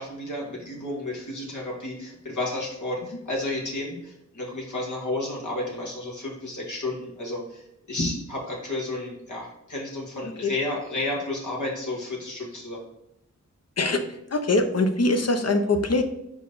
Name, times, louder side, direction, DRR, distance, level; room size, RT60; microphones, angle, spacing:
voice 1, 0.0-7.6 7.9-12.8, left 2 dB, 85° left, -3 dB, 2.1 m, -32 dB
voice 2, 13.8-16.0, left 2 dB, 60° left, 7 dB, 0.9 m, -23 dB
5.2 x 4.9 x 4.1 m, 0.84 s
wide cardioid pair, 75°, 29 cm